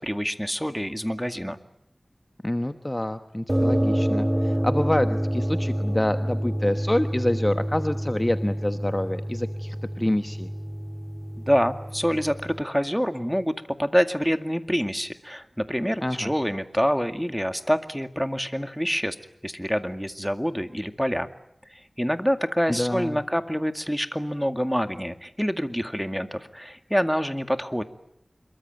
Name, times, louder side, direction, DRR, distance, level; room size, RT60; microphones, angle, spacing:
voice 1, 0.0-1.6 11.4-19.2 19.4-21.3 21.7-27.8, equal, ahead, 8 dB, 2.1 m, -26 dB
voice 2, 2.4-10.5 16.0-16.3 22.7-23.2, left 1 dB, 20° left, 8 dB, 1.2 m, -27 dB
sound 1, 3.5-12.6, equal, 25° right, 2.7 m, -27 dB
27.0 x 22.5 x 9.3 m, 0.76 s
wide cardioid pair, 45°, 0 cm